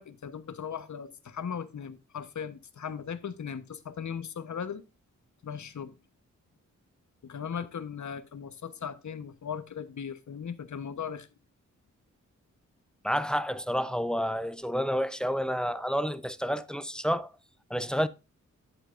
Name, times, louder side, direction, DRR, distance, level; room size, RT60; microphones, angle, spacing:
voice 1, 0.0-4.8 5.4-5.9 7.2-11.3, left 7 dB, 65° left, 1.0 m, -38 dB
voice 2, 13.0-17.3 17.7-18.1, equal, 5° left, 0.7 m, -29 dB
10.0 x 8.3 x 2.5 m
cardioid pair, 70°, 31 cm